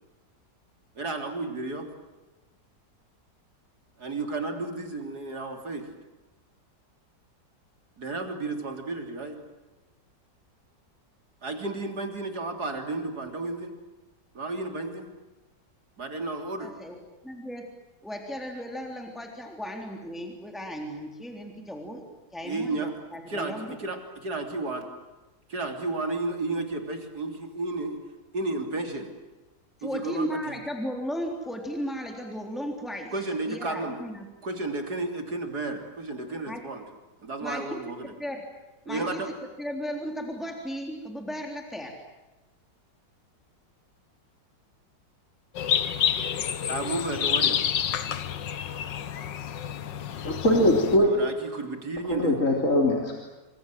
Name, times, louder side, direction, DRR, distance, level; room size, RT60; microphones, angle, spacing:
voice 1, 1.0-1.9 4.0-5.9 8.0-9.4 11.4-13.7 14.3-15.1 16.0-16.7 22.4-22.9 23.3-24.9 25.5-28.0 28.3-29.1 29.8-30.6 33.1-34.0 34.4-36.8 37.2-38.1 38.9-39.3 46.7-47.6 51.0-52.4, right 2 dB, 60° right, 4 dB, 3.9 m, -32 dB
voice 2, 16.6-17.0 17.2-17.7 18.0-22.0 22.3-23.8 29.8-34.3 36.5-36.6 37.4-37.8 38.2-38.4 38.9-39.2 39.6-41.9, equal, ahead, 2 dB, 3.6 m, -35 dB
sound 1, 45.5-51.0, left 9 dB, 85° left, 1.9 m, -28 dB
voice 3, 50.2-51.1 52.1-53.1, left 1 dB, 45° left, 0 dB, 3.9 m, -21 dB
28.5 x 26.0 x 7.8 m, 1.1 s
omnidirectional pair, 1.9 m